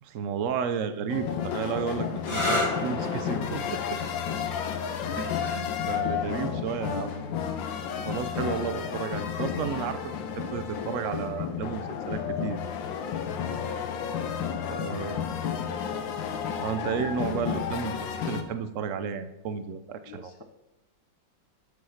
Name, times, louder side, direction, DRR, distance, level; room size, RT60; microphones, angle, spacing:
voice 1, 0.0-3.6 3.9-4.0 5.2-7.1 8.0-12.6 14.7-15.2 16.6-20.4, right 7 dB, 65° right, 10 dB, 0.7 m, -33 dB
sound 1, 1.1-18.4, left 7 dB, 85° left, 1.5 m, -32 dB
sound 2, 2.2-9.6 10.6-11.1 14.7-15.0, left 2 dB, 50° left, 2.6 m, -36 dB
voice 2, 3.4-3.9 5.0-5.4 6.0-7.5 13.5-14.5 14.9-15.3 15.6-16.1 20.0-20.4, left 5 dB, 65° left, 5 dB, 1.1 m, -43 dB
7.8 x 5.8 x 5.7 m, 0.91 s
omnidirectional pair, 2.0 m